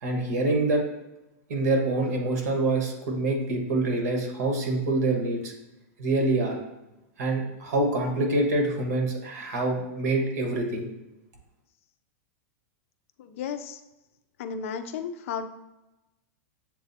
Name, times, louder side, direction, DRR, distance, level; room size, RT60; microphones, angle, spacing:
voice 1, 0.0-0.8 1.5-5.5 6.0-6.6 7.2-10.9, right 2 dB, 80° right, 2 dB, 1.1 m, -26 dB
voice 2, 13.2-13.8 14.4-15.5, left 7 dB, 55° left, 8 dB, 0.4 m, -33 dB
7.3 x 2.5 x 2.6 m, 0.96 s
supercardioid pair, 165°, 8 cm